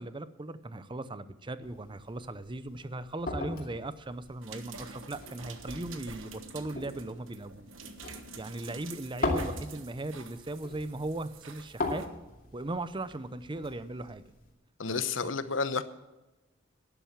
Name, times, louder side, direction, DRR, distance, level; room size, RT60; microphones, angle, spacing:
voice 1, 0.0-7.7 8.4-12.0 12.5-14.2 14.9-15.3, right 2 dB, 25° right, 14 dB, 0.7 m, -38 dB
sound 1, 1.6-14.5, left 2 dB, 45° left, 2.5 m, -40 dB
sound 2, 4.4-12.1 13.1-13.2, right 4 dB, 85° right, 1.4 m, -47 dB
voice 2, 14.8-15.8, left 4 dB, 75° left, 13 dB, 0.9 m, -30 dB
12.0 x 10.5 x 7.3 m, 1.1 s
head